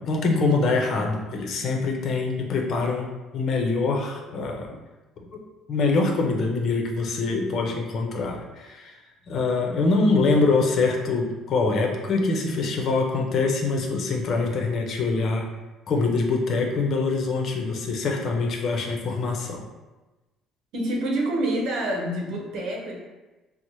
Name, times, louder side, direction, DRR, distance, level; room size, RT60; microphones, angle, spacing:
voice 1, 0.0-3.1 3.3-4.7 5.7-8.9 9.3-15.4 15.9-19.6, left 3 dB, 55° left, 2 dB, 0.6 m, -24 dB
voice 2, 20.7-23.0, right 1 dB, 75° right, -1 dB, 0.8 m, -27 dB
3.9 x 2.1 x 3.0 m, 1.1 s
supercardioid pair, 90°, 0 cm